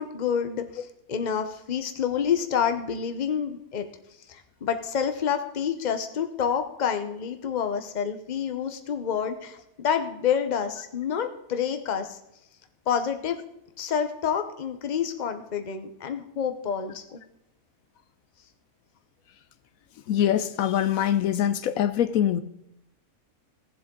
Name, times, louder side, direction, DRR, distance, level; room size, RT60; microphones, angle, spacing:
voice 1, 0.0-3.9 4.3-12.2 12.9-13.4 13.8-17.2, left 7 dB, 35° left, 0.9 m, -28 dB
voice 2, 20.1-22.4, left 10 dB, 75° left, 1.0 m, -23 dB
17.5 x 7.7 x 3.8 m
omnidirectional pair, 1.5 m